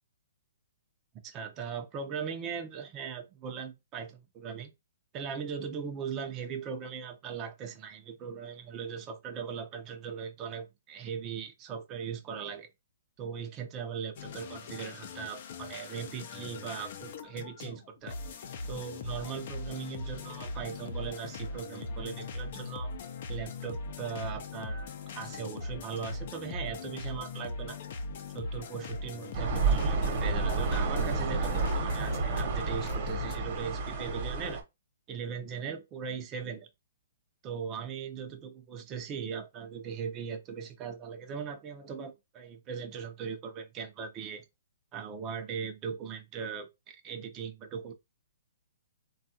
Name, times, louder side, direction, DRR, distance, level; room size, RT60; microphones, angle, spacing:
voice 1, 1.2-4.7 5.1-12.7 13.2-18.2 18.7-22.9 23.3-27.8 28.3-34.6 35.1-36.7 37.4-44.4 44.9-47.9, right 7 dB, 25° right, 0.6 m, -39 dB
sound 1, 14.2-33.4, left 3 dB, 55° left, 0.6 m, -40 dB
sound 2, 29.3-34.6, right 4 dB, 45° right, 1.1 m, -30 dB
3.3 x 2.4 x 2.7 m
hypercardioid pair, 145°, 0 cm